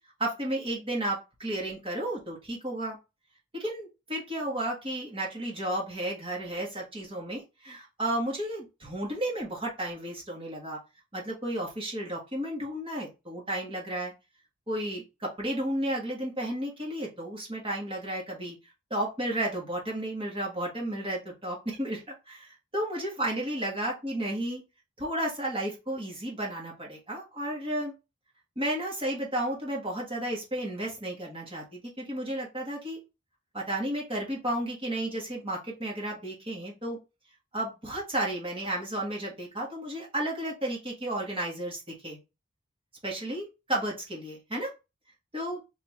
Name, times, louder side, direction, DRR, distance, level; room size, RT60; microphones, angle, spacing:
voice 1, 0.2-3.0 3.5-10.8 11.1-14.1 14.7-18.6 18.9-24.6 25.0-27.9 28.5-33.0 33.5-37.0 37.5-42.2 43.0-44.7 45.3-45.6, right 1 dB, 25° right, -3 dB, 1.5 m, -33 dB
3.6 x 3.6 x 3.1 m, 0.26 s
head